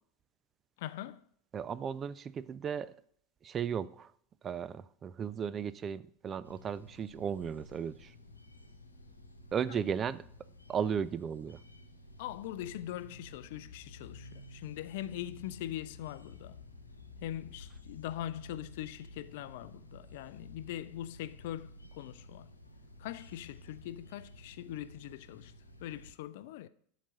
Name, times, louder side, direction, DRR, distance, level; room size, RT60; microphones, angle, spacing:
voice 1, 0.8-1.2 9.7-9.8 12.2-16.6 17.2-22.5 23.0-25.5 25.8-26.7, left 13 dB, 55° left, 0.4 m, -42 dB
voice 2, 1.5-2.9 3.4-4.1 4.4-8.1 9.5-10.2 10.7-11.6, right 7 dB, 30° right, 0.3 m, -35 dB
sound 1, 6.4-26.1, left 2 dB, 85° left, 0.9 m, -53 dB
12.0 x 4.1 x 4.9 m
figure-of-eight pair, 85°, 0 cm